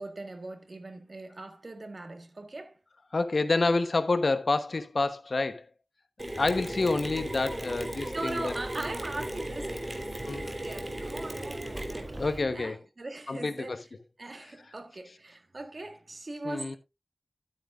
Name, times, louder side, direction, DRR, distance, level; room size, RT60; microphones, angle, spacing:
voice 1, 0.0-2.8 8.1-12.3 12.5-13.8 14.2-16.8, right 2 dB, 55° right, 1.7 m, -40 dB
voice 2, 3.1-5.7 6.3-8.5 10.3-10.4 12.2-12.8 13.3-13.8 16.4-16.8, left 3 dB, 65° left, 1.1 m, -28 dB
Mechanisms, 6.2-12.4, right 1 dB, 30° right, 3.1 m, -37 dB
sound 1, 6.4-12.7, right 2 dB, 70° right, 3.6 m, -45 dB
12.5 x 8.9 x 2.6 m
wide cardioid pair, 50°, 0 cm